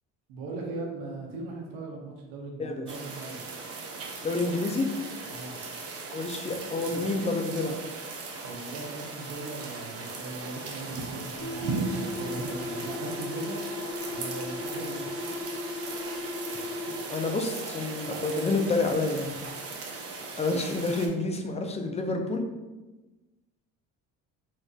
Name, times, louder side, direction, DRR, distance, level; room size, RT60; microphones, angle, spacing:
voice 1, 0.3-3.5 5.2-5.6 8.4-15.0, right 2 dB, 80° right, -1 dB, 0.9 m, -39 dB
sound 1, 2.9-21.1, right 3 dB, 40° right, 0.7 m, -38 dB
voice 2, 4.2-4.9 6.1-7.8 17.1-19.3 20.4-22.5, left 3 dB, 20° left, 4 dB, 0.4 m, -28 dB
sound 2, 11.4-17.3, left 3 dB, 80° left, 1.4 m, -36 dB
4.2 x 2.4 x 2.3 m, 1.1 s
supercardioid pair, 75°, 36 cm